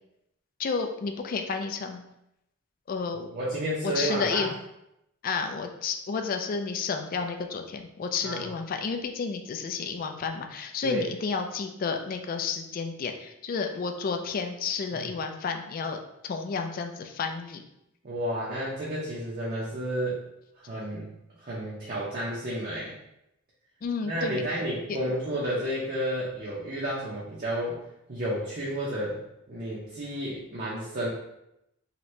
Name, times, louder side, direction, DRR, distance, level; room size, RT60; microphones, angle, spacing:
voice 1, 0.6-2.0 2.9-3.3 3.8-4.5 5.2-17.6 23.8-24.6 24.9-25.0, left 5 dB, 40° left, 5 dB, 0.3 m, -31 dB
voice 2, 3.3-4.5 8.2-8.4 10.8-11.0 14.9-15.1 18.0-20.2 20.6-21.1 21.4-22.9 24.0-27.8 28.1-29.2 29.5-31.1, right 1 dB, 45° right, -6 dB, 0.6 m, -31 dB
2.9 x 2.6 x 3.1 m, 0.83 s
head